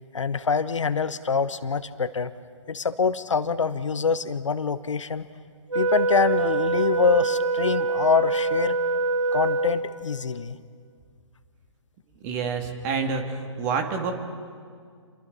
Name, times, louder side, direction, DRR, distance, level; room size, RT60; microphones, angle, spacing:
voice 1, 0.1-2.3 2.7-5.2 5.7-8.8 9.3-10.5, left 5 dB, 75° left, 13 dB, 1.0 m, -25 dB
Wind instrument woodwind instrument, 5.7-10.1, right 3 dB, 90° right, 2.3 m, -25 dB
voice 2, 12.2-14.1, right 5 dB, 30° right, 4 dB, 2.5 m, -28 dB
29.0 x 22.5 x 4.2 m, 2.1 s
figure-of-eight pair, 130°, 16 cm